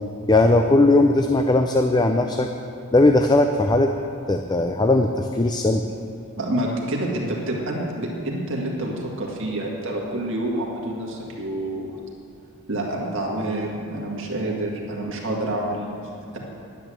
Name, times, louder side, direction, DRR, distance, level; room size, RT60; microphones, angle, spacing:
voice 1, 0.3-2.5 2.9-3.9 4.3-5.8, left 2 dB, 20° left, 5 dB, 0.4 m, -18 dB
voice 2, 6.4-11.9 12.7-16.0, right 1 dB, 60° right, -1 dB, 1.8 m, -28 dB
10.0 x 9.3 x 7.6 m, 2.6 s
head